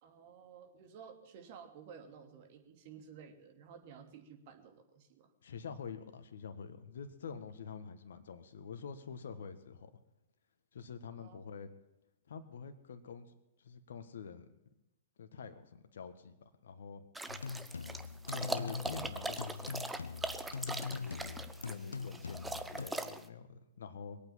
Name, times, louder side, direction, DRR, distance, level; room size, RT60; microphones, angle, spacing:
voice 1, 0.0-5.3 11.2-11.5, right 7 dB, 50° right, 5 dB, 2.8 m, -54 dB
voice 2, 5.4-9.9 10.7-11.7 12.3-14.5 15.2-17.0 18.3-20.2 20.9-24.2, left 6 dB, 70° left, 8 dB, 1.6 m, -47 dB
sound 1, 17.2-23.3, right 2 dB, 5° right, 1.0 m, -41 dB
sound 2, 17.3-22.9, left 5 dB, 85° left, 0.5 m, -42 dB
21.5 x 8.9 x 7.2 m, 0.92 s
hypercardioid pair, 115°, 0 cm